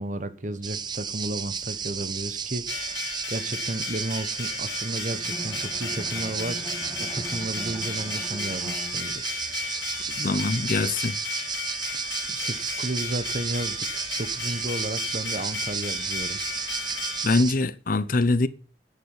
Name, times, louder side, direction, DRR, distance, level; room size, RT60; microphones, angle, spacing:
voice 1, 0.0-3.0 3.3-6.7 7.0-9.4 11.9-16.4, right 1 dB, 45° right, 1.2 m, -33 dB
sound 1, 0.6-17.5, right 6 dB, 25° right, 0.7 m, -33 dB
sound 2, 2.7-17.3, left 6 dB, 85° left, 4.0 m, -35 dB
Bowed string instrument, 5.1-9.4, equal, 15° left, 1.5 m, -40 dB
voice 2, 10.2-11.2 16.8-18.5, left 2 dB, 50° left, 0.8 m, -24 dB
10.0 x 7.2 x 9.0 m
head